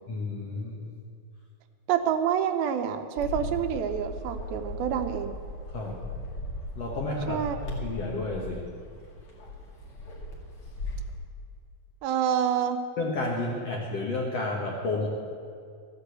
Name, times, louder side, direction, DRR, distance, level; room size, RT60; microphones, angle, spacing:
voice 1, 0.1-0.9 5.7-5.9 6.8-8.6 13.0-15.1, left 2 dB, 60° left, -1 dB, 1.7 m, -31 dB
voice 2, 1.9-5.4 7.3-7.6 12.0-12.8, right 9 dB, 80° right, 8 dB, 2.4 m, -27 dB
Bark, 3.2-11.1, left 1 dB, 40° left, 2.8 m, -38 dB
14.5 x 8.3 x 8.2 m, 2.2 s
omnidirectional pair, 4.4 m